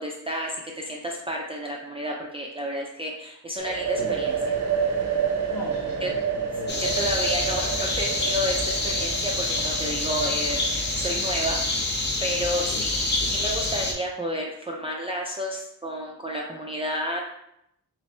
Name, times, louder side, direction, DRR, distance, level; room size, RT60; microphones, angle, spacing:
voice 1, 0.0-4.3 6.0-6.1 6.8-11.6 12.2-17.2, equal, 20° right, -2 dB, 0.3 m, -31 dB
sound 1, 3.6-11.2, right 6 dB, 60° right, 0.6 m, -29 dB
voice 2, 5.5-6.9 12.7-13.5, left 3 dB, 75° left, 0 dB, 0.9 m, -39 dB
sound 2, 6.7-13.9, left 2 dB, 35° left, 0.6 m, -27 dB
3.3 x 3.2 x 3.0 m, 0.76 s
wide cardioid pair, 145°, 33 cm